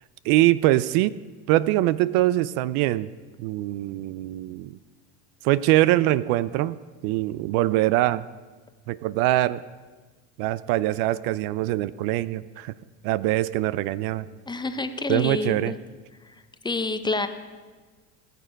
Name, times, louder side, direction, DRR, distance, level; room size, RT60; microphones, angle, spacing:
voice 1, 0.2-1.2 1.5-3.1 3.4-4.8 5.4-6.8 7.0-8.2 8.9-9.6 10.4-12.7 13.0-14.3 15.1-15.7, right 16 dB, 65° right, 18 dB, 0.5 m, -23 dB
voice 2, 14.5-15.8 16.2-16.3 16.6-17.3, left 3 dB, 10° left, 8 dB, 0.7 m, -28 dB
18.5 x 6.8 x 5.2 m, 1.4 s
supercardioid pair, 110°, 39 cm